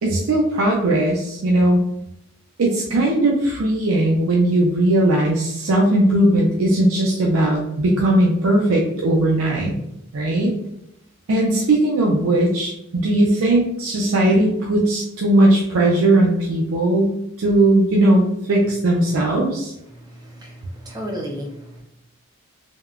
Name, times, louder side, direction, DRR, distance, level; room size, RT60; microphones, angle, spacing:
voice 1, 0.0-1.8 2.6-9.8 10.1-10.5 11.3-18.2 18.5-19.7, right 1 dB, 85° right, -2 dB, 0.5 m, -18 dB
voice 2, 19.9-21.8, equal, 20° right, -1 dB, 0.6 m, -33 dB
3.4 x 2.1 x 2.3 m, 0.80 s
head